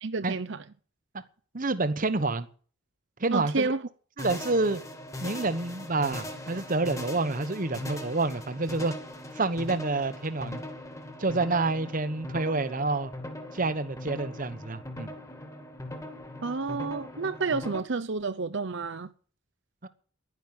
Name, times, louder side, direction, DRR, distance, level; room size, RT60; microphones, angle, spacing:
voice 1, 0.0-0.6 3.3-3.8 16.4-19.1, right 4 dB, 60° right, 0.8 m, -30 dB
voice 2, 1.5-2.5 3.2-3.7 4.2-4.8 5.2-8.9 9.3-10.7 11.2-13.1 13.5-15.1 19.8-19.9, right 3 dB, 40° right, 1.1 m, -28 dB
sound 1, 4.2-17.8, left 1 dB, 15° left, 2.3 m, -40 dB
11.5 x 10.5 x 9.0 m
head